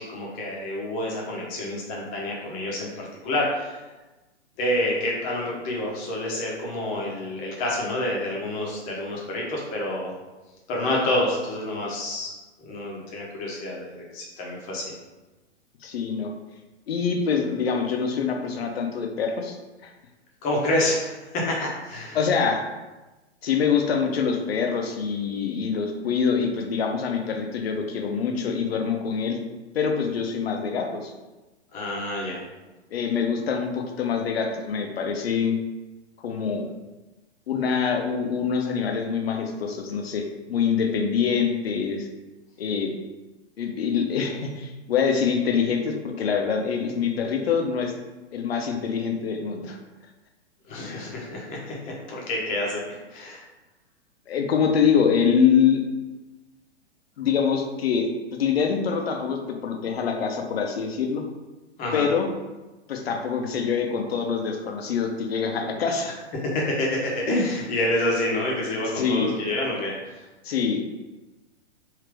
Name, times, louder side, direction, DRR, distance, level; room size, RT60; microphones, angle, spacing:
voice 1, 0.0-3.8 4.6-10.1 10.7-12.3 12.6-14.8 20.4-22.2 31.7-32.4 50.7-52.8 53.1-53.4 61.8-62.0 66.4-70.2, left 1 dB, 25° left, -3 dB, 0.9 m, -28 dB
voice 2, 15.8-16.3 16.9-19.6 19.8-19.9 22.1-22.6 23.4-29.4 29.7-31.1 32.9-35.6 36.2-36.7 37.5-42.1 42.6-42.9 43.6-47.9 48.3-49.8 50.8-51.0 54.3-55.8 57.2-61.2 61.9-62.3 62.9-66.2 69.0-69.4 70.4-70.9, left 6 dB, 60° left, 3 dB, 0.7 m, -25 dB
3.3 x 2.8 x 3.3 m, 1.1 s
figure-of-eight pair, 115°, 35 cm